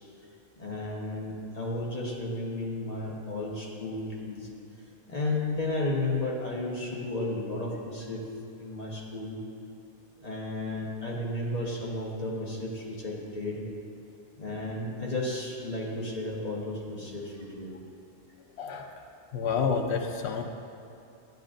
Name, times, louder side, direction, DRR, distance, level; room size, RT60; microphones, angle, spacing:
voice 1, 0.6-4.5 5.1-8.2 8.6-9.4 10.2-13.6 14.4-17.7, left 2 dB, 40° left, -4 dB, 1.3 m, -33 dB
voice 2, 18.6-18.9 19.3-20.4, left 5 dB, 85° left, 4 dB, 0.9 m, -29 dB
10.5 x 9.0 x 2.5 m, 2.7 s
omnidirectional pair, 1.1 m